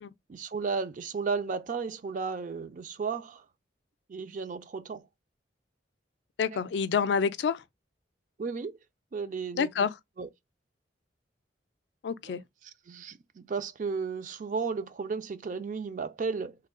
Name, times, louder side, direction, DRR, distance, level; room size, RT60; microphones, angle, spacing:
voice 1, 0.3-3.4 4.1-5.0 8.4-8.8 9.1-9.9 10.2-10.3 12.2-12.4 12.9-16.6, right 5 dB, 45° right, 0.4 m, -34 dB
voice 2, 6.4-7.6 9.6-9.9 12.0-12.4, left 6 dB, 70° left, 0.3 m, -28 dB
3.2 x 2.2 x 3.6 m
head